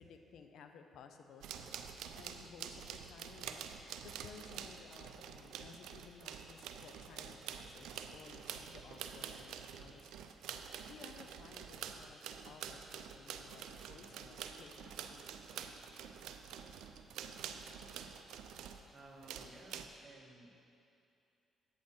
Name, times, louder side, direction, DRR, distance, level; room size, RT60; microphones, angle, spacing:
voice 1, 0.0-3.7 4.0-10.2 10.9-12.2 12.5-15.3, left 6 dB, 75° left, 6 dB, 0.7 m, -57 dB
sound 1, 1.4-18.9 19.2-19.9, right 8 dB, 85° right, 0.5 m, -47 dB
voice 2, 18.9-20.7, right 2 dB, 30° right, -1 dB, 1.7 m, -57 dB
10.5 x 8.7 x 4.5 m, 2.6 s
cardioid pair, 90°, 0 cm